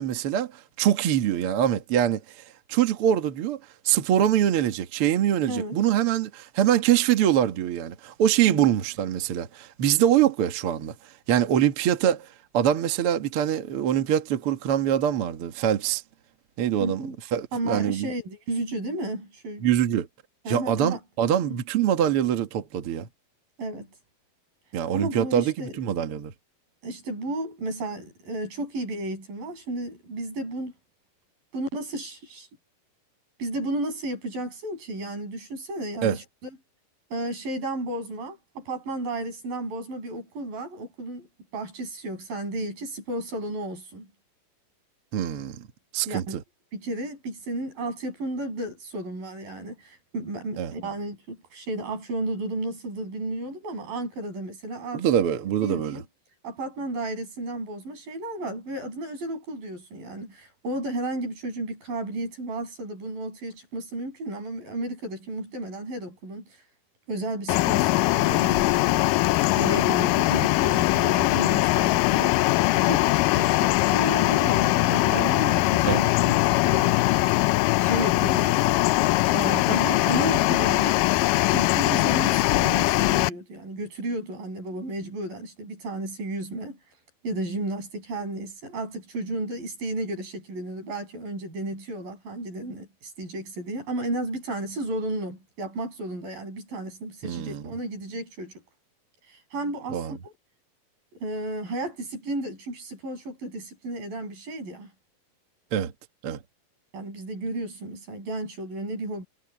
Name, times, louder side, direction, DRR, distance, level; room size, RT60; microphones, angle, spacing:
voice 1, 0.0-2.4 2.7-3.6 3.8-12.3 12.5-16.0 16.6-17.0 17.3-18.1 19.6-20.1 20.5-23.1 24.7-26.3 36.0-36.2 45.1-45.7 45.9-46.4 50.6-50.7 54.9-56.0 75.9-76.0 97.2-97.7 99.9-100.2 105.7-105.9 106.2-106.4, right 10 dB, 55° right, 1.7 m, -24 dB
voice 2, 5.4-5.7 8.5-8.7 16.8-17.2 17.5-19.7 20.5-21.0 21.5-21.6 23.6-23.9 24.9-25.7 26.8-30.7 31.5-32.5 33.4-36.2 37.1-41.3 41.5-44.1 46.1-46.4 46.7-55.1 55.6-56.0 56.4-66.6 67.1-69.0 69.6-72.4 72.8-77.0 77.8-79.0 79.3-81.0 81.5-86.8 87.2-98.5 99.5-100.3 101.2-104.9 106.9-109.2, right 1 dB, 70° right, 9.1 m, -33 dB
sound 1, 67.5-83.3, left 19 dB, 80° left, 2.0 m, -21 dB
omnidirectional pair, 4.2 m